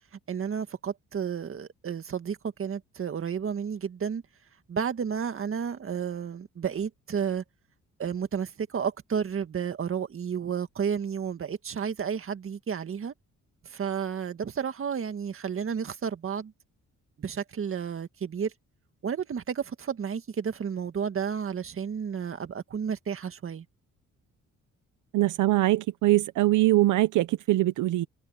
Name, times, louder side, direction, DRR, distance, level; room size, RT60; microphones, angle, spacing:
voice 1, 0.3-4.2 4.7-7.4 8.0-13.1 13.6-16.5 17.2-18.5 19.0-23.6, right 7 dB, 45° right, 1.9 m, -32 dB
voice 2, 25.1-28.1, right 16 dB, 80° right, 0.9 m, -22 dB
cardioid pair, 90°, 30 cm